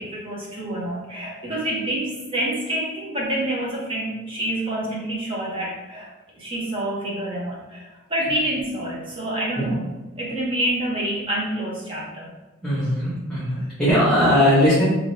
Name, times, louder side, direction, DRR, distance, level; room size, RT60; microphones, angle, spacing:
voice 1, 0.0-6.1 6.4-9.8 10.2-12.3, right 1 dB, 25° right, -5 dB, 0.8 m, -27 dB
voice 2, 12.6-14.8, equal, 5° left, -11 dB, 0.7 m, -19 dB
3.5 x 2.9 x 2.6 m, 1.1 s
head